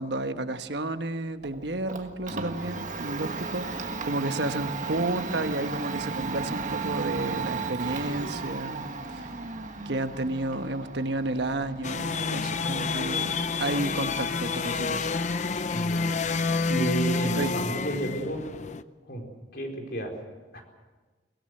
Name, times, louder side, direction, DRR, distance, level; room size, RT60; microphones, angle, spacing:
voice 1, 0.0-9.3 9.8-13.3 13.6-15.1 17.3-17.5, right 2 dB, 65° right, 8 dB, 1.2 m, -31 dB
Domestic sounds home sounds, 1.4-17.3, right 4 dB, 40° right, 1.5 m, -36 dB
sound 1, 11.8-18.8, left 4 dB, 40° left, 0.6 m, -29 dB
voice 2, 15.7-16.1 16.7-18.4 19.1-19.2 19.5-20.1 20.5-20.6, right 1 dB, 55° left, 2 dB, 4.3 m, -31 dB
23.5 x 17.0 x 7.8 m, 1.3 s
head